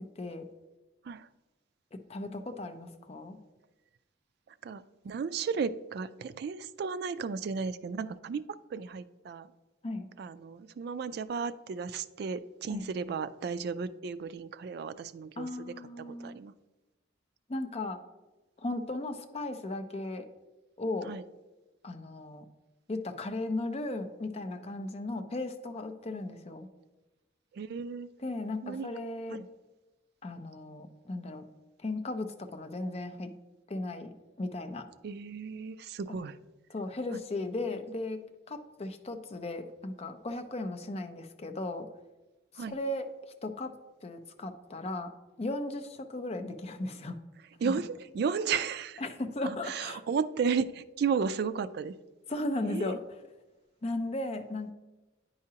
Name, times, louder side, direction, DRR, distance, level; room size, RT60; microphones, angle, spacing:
voice 1, 0.2-0.5 1.9-3.4 9.8-10.1 12.7-12.9 15.4-16.4 17.5-18.0 18.6-20.3 20.8-21.1 21.8-22.5 22.9-26.7 28.2-29.4 30.2-31.4 31.8-33.3 33.7-34.9 36.7-38.2 38.5-41.9 42.5-43.1 43.4-43.7 44.0-45.1 45.4-47.2 49.0-50.0 52.3-53.0 53.8-54.7, left 2 dB, 35° left, 6 dB, 0.5 m, -36 dB
voice 2, 4.6-8.4 8.7-9.5 10.2-16.5 21.1-21.2 26.1-26.4 27.5-28.1 28.6-28.9 29.3-29.5 35.0-36.4 42.6-42.8 47.6-49.0 49.4-51.9 52.6-52.9, right 5 dB, 60° right, 13 dB, 0.3 m, -34 dB
9.5 x 4.8 x 2.8 m, 1.1 s
head